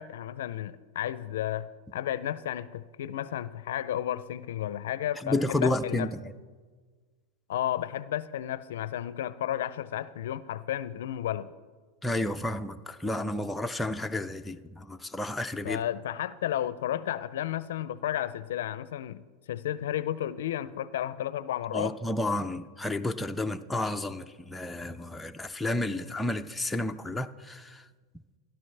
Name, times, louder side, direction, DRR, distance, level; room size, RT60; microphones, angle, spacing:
voice 1, 0.0-6.1 7.5-11.5 15.6-22.0 25.9-26.0, left 11 dB, 80° left, 0.4 m, -33 dB
voice 2, 5.2-6.2 12.0-15.8 21.7-27.8, left 1 dB, 5° left, 0.5 m, -31 dB
16.0 x 11.5 x 3.3 m
hypercardioid pair, 125°, 0 cm